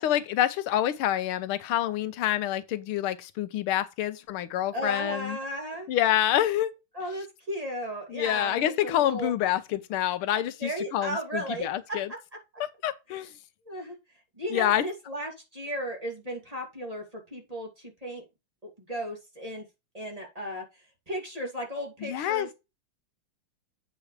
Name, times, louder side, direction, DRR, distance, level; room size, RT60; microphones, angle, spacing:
voice 1, 0.0-5.4 5.9-6.7 8.1-12.1 12.8-13.3 14.5-14.8 22.0-22.5, left 12 dB, 90° left, 1.6 m, -27 dB
voice 2, 4.7-5.9 6.9-9.3 10.6-12.0 13.7-14.0 14.4-18.2 18.6-19.6 19.9-20.7 21.1-22.5, equal, 15° right, 2.6 m, -35 dB
8.4 x 6.8 x 3.3 m
omnidirectional pair, 2.3 m